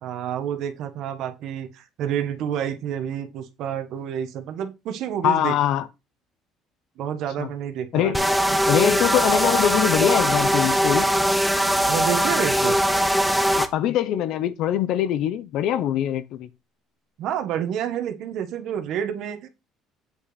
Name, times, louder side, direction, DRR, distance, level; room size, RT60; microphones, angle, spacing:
voice 1, 0.0-5.5 7.0-8.2 8.5-8.6 11.8-12.8 17.2-19.5, right 9 dB, 55° right, 1.3 m, -29 dB
voice 2, 5.2-5.9 7.4-7.5 7.9-8.2 8.7-11.1 13.6-16.5, left 11 dB, 60° left, 0.7 m, -23 dB
sound 1, 8.1-13.7, equal, ahead, 0.6 m, -21 dB
8.3 x 5.7 x 4.1 m
cardioid pair, 165°, 0 cm